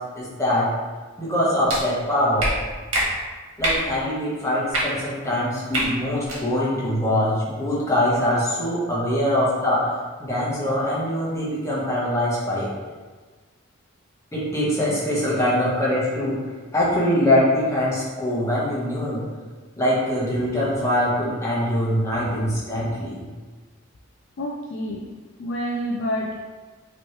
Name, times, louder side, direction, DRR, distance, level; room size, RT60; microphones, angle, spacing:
voice 1, 0.1-0.7 1.2-2.5 3.6-9.8 10.2-12.7 14.3-16.4 16.7-19.2 19.8-23.2, left 1 dB, 15° left, -7 dB, 1.2 m, -23 dB
sound 1, 1.7-1.8 2.4-2.5 2.9-3.0 3.6-3.8 4.7-4.8 5.7-5.8 6.2-6.4, right 1 dB, 70° right, 1.5 m, -23 dB
voice 2, 24.4-25.1 25.4-26.4, equal, 55° left, -2 dB, 0.4 m, -28 dB
5.1 x 3.1 x 3.1 m, 1.4 s
head